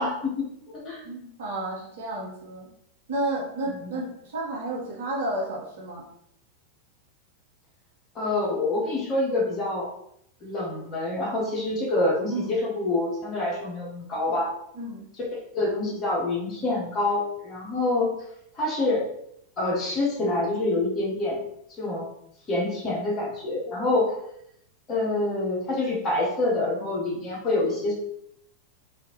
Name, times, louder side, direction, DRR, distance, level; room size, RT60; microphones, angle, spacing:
voice 1, 0.0-1.0 3.7-3.9 8.1-9.9 10.4-14.5 15.5-18.1 18.6-19.1 19.6-21.4 21.8-22.1 22.5-24.1 24.9-27.9, left 2 dB, 25° left, -4 dB, 1.3 m, -26 dB
voice 2, 1.0-2.7 3.1-6.0 12.3-12.6 14.7-15.0, right 1 dB, 55° right, -5 dB, 1.2 m, -31 dB
3.5 x 2.7 x 3.0 m, 0.73 s
figure-of-eight pair, 90°, 0 cm